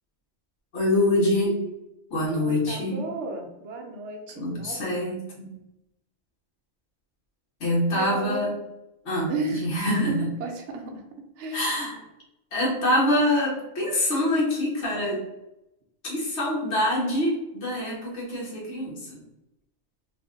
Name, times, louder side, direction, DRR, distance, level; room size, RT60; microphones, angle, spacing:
voice 1, 0.7-1.6 2.1-3.0 4.4-5.5 7.6-8.5 9.0-10.2 11.5-12.0 12.5-15.2 16.0-19.2, left 1 dB, 65° left, -5 dB, 1.3 m, -25 dB
voice 2, 2.3-5.0 7.9-8.5 9.3-9.7 10.1-11.0 11.4-11.7, right 3 dB, 80° right, 2 dB, 0.9 m, -33 dB
3.2 x 2.2 x 3.6 m, 0.90 s
omnidirectional pair, 1.2 m